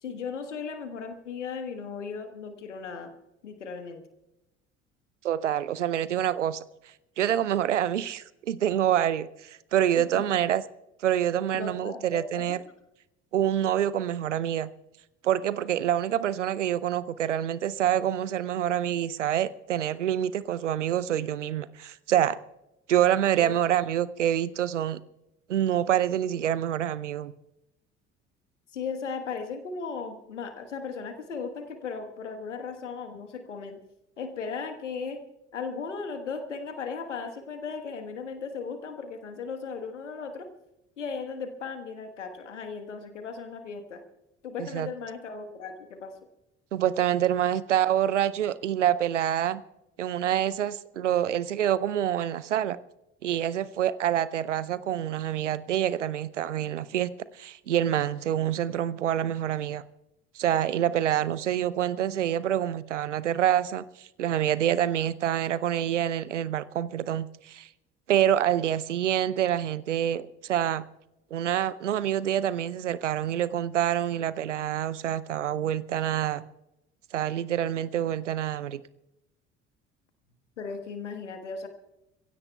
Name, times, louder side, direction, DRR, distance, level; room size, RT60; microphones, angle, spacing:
voice 1, 0.0-3.1 3.4-4.0 10.1-10.4 11.5-12.6 23.4-23.5 28.7-33.8 34.2-35.2 35.5-40.5 41.0-44.0 44.4-46.1 80.6-81.7, left 5 dB, 80° left, 7 dB, 1.4 m, -36 dB
voice 2, 5.2-6.6 7.2-10.6 11.0-12.6 13.3-14.7 15.2-22.4 22.9-25.0 25.5-27.3 44.6-44.9 46.7-49.6 50.0-52.8 53.2-59.8 60.3-67.7 68.1-70.8 71.3-76.4 77.1-78.8, right 11 dB, 80° right, 18 dB, 0.6 m, -26 dB
30.0 x 16.5 x 2.3 m, 0.90 s
figure-of-eight pair, 55°, 36 cm